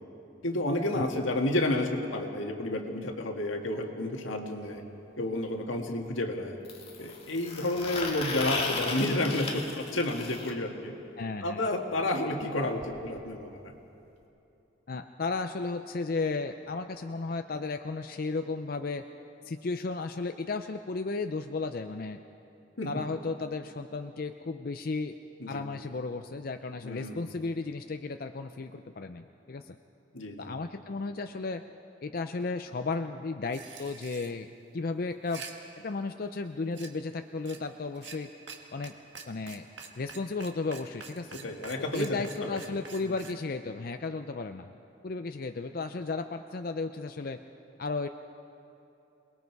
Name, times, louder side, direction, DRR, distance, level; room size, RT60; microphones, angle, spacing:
voice 1, 0.4-4.8 5.2-6.6 7.0-10.9 11.4-13.7 22.8-22.9 25.4-25.6 26.8-27.2 30.1-30.5 41.3-42.6, left 1 dB, 85° left, 3 dB, 1.9 m, -31 dB
sound 1, 4.6-4.7 6.6-10.5 12.4-12.5 12.8-12.9 13.2-13.3 14.2-14.3, left 3 dB, 30° left, 1.9 m, -35 dB
voice 2, 11.2-11.7 14.9-19.0 19.4-22.2 22.9-25.2 25.5-29.8 30.4-31.6 32.0-34.5 34.7-35.4 35.8-38.3 38.7-38.9 39.3-39.7 40.0-41.4 41.8-44.8 45.0-47.4 47.8-48.1, left 3 dB, 50° left, 7 dB, 0.5 m, -34 dB
sound 2, 33.5-34.3 35.1-35.5 36.7-36.9 37.4-37.6 37.9-38.2 38.5-38.6 38.8-38.9 39.1-43.3, right 5 dB, 65° right, 1.7 m, -45 dB
28.0 x 20.0 x 4.6 m, 2.8 s
head